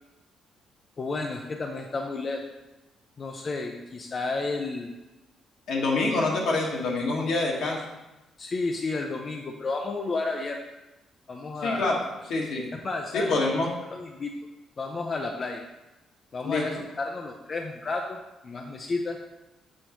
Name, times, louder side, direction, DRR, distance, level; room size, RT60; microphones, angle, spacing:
voice 1, 1.0-2.4 3.2-4.9 8.4-10.6 11.3-11.9 12.7-13.3 13.9-14.3 14.8-15.6 16.3-18.2 18.4-19.2, left 3 dB, 40° left, 2 dB, 0.5 m, -31 dB
voice 2, 5.7-7.8 11.6-12.0 12.3-12.6 13.1-13.7 16.4-16.6, left 3 dB, 75° left, -2 dB, 1.4 m, -26 dB
6.3 x 5.2 x 3.0 m, 1.0 s
cardioid pair, 90°, 0 cm